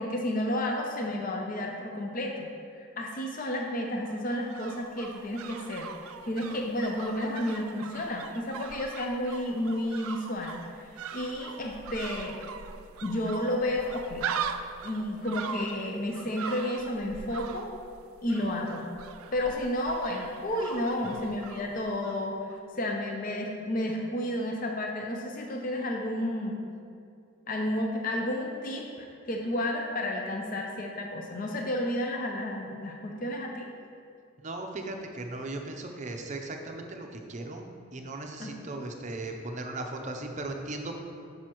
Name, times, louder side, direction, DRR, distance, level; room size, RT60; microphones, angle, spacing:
voice 1, 0.0-2.5 2.8-12.4 13.0-14.3 14.8-17.7 18.2-18.8 19.3-26.6 27.5-33.7 38.4-38.5, left 1 dB, 40° left, 1 dB, 0.6 m, -31 dB
sound 1, 4.1-22.2 22.5-22.6, right 7 dB, 80° right, 0.4 m, -41 dB
voice 2, 34.4-37.6 37.9-41.0, right 2 dB, 35° right, 4 dB, 0.6 m, -37 dB
9.2 x 6.3 x 3.0 m, 2.5 s
head